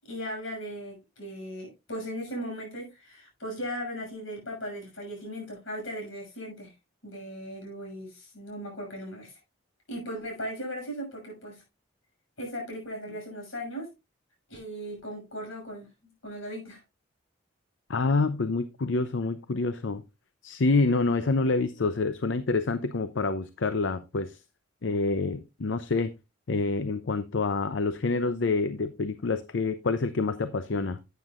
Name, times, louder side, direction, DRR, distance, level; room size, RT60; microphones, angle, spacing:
voice 1, 0.0-6.7 7.0-9.4 9.9-11.6 12.4-13.9 14.5-16.8, equal, 75° left, 0 dB, 6.4 m, -38 dB
voice 2, 17.9-20.0 20.4-24.4 24.8-26.1 26.5-31.0, left 3 dB, 60° left, 12 dB, 0.6 m, -27 dB
11.5 x 9.2 x 2.4 m, 0.25 s
head